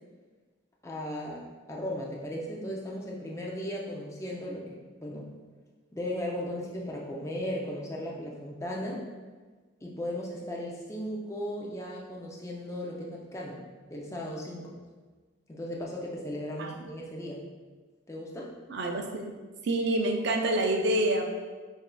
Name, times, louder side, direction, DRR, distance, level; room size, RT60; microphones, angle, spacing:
voice 1, 0.8-5.3 5.9-9.0 9.8-13.6 13.9-14.7 15.5-17.5 18.1-18.5, equal, 15° left, -3 dB, 0.4 m, -36 dB
voice 2, 18.7-19.3 19.6-21.2, right 1 dB, 55° right, 3 dB, 0.4 m, -27 dB
6.0 x 2.6 x 2.2 m, 1.4 s
head